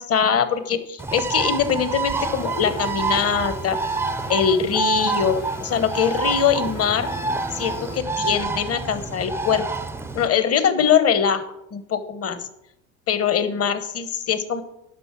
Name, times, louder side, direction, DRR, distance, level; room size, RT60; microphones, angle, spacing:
voice 1, 0.0-3.8 4.3-7.1 7.5-9.7 10.1-11.4 11.7-12.5 13.1-14.6, left 7 dB, 35° left, 11 dB, 1.2 m, -22 dB
Bird, 1.0-10.3, right 3 dB, 5° right, 0.5 m, -27 dB
sound 1, 2.0-8.0, left 4 dB, 80° left, 4.7 m, -41 dB
11.0 x 5.4 x 6.0 m, 0.82 s
hypercardioid pair, 85°, 41 cm